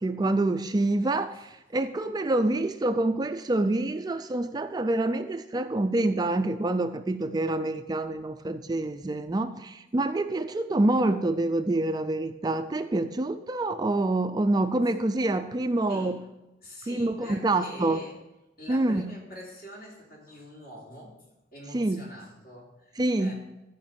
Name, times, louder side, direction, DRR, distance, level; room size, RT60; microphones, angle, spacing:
voice 1, 0.0-16.2 16.9-18.0 18.7-19.1 21.7-22.0 23.0-23.3, right 2 dB, 20° right, 9 dB, 0.4 m, -26 dB
voice 2, 15.9-16.3 16.6-18.2 18.6-21.2 21.5-23.3, equal, 55° left, -3 dB, 3.4 m, -45 dB
13.5 x 5.2 x 6.9 m, 0.96 s
head